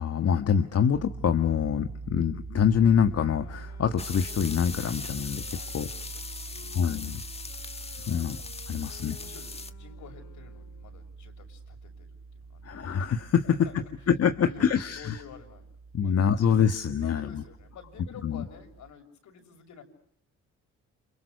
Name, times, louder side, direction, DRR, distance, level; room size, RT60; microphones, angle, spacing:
voice 1, 0.0-5.9 6.7-7.2 7.9-8.4 8.7-9.2 12.6-13.6 14.1-15.2 15.9-17.4 18.2-18.4, left 7 dB, 55° left, 8 dB, 1.6 m, -25 dB
sound 1, 0.9-18.9, right 4 dB, 45° right, 2.1 m, -44 dB
Wind instrument woodwind instrument, 3.1-11.0, left 8 dB, 90° left, 5.1 m, -54 dB
sound 2, 4.0-9.7, left 3 dB, 20° left, 1.5 m, -40 dB
voice 2, 5.5-6.8 8.0-8.3 9.2-12.7 13.4-14.1 14.4-16.5 17.0-19.8, left 6 dB, 75° left, 5 dB, 6.9 m, -49 dB
30.0 x 27.5 x 6.6 m, 0.71 s
cardioid pair, 90°, 30 cm